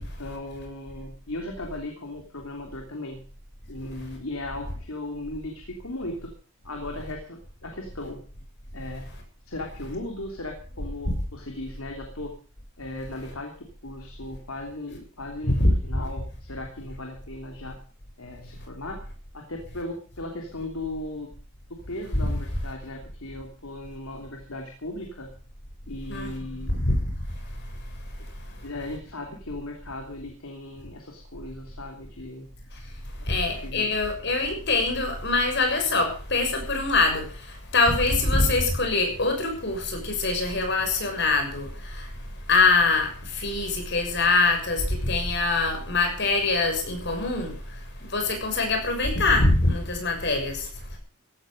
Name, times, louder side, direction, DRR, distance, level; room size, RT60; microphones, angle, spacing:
voice 1, 0.0-3.2 3.7-6.3 6.6-8.2 8.7-9.1 9.5-12.3 12.8-15.5 15.8-17.8 18.2-19.0 19.3-21.3 21.7-25.3 25.9-26.8 28.6-32.5 33.2-33.9, left 2 dB, 75° left, 2 dB, 3.2 m, -37 dB
voice 2, 26.7-27.0 33.3-37.3 37.7-41.7 41.9-42.0 42.5-47.5 48.0-50.6, left 3 dB, 50° left, 4 dB, 6.6 m, -23 dB
16.5 x 13.0 x 5.3 m, 0.41 s
head